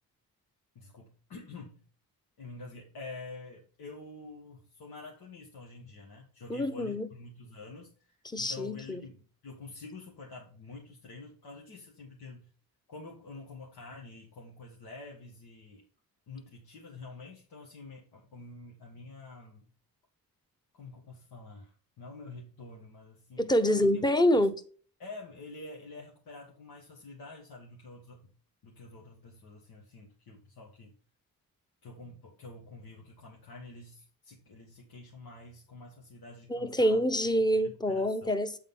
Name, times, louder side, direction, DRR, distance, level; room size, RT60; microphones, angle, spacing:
voice 1, 0.7-1.8 2.4-12.5 12.9-15.8 16.3-19.7 20.7-24.0 25.0-28.3 28.6-30.9 31.8-38.3, left 3 dB, 90° left, 1.7 m, -48 dB
voice 2, 6.5-7.1 8.2-9.0 23.4-24.6 36.5-38.6, equal, 10° left, 0.8 m, -26 dB
8.5 x 3.9 x 5.5 m
cardioid pair, 95°, 35 cm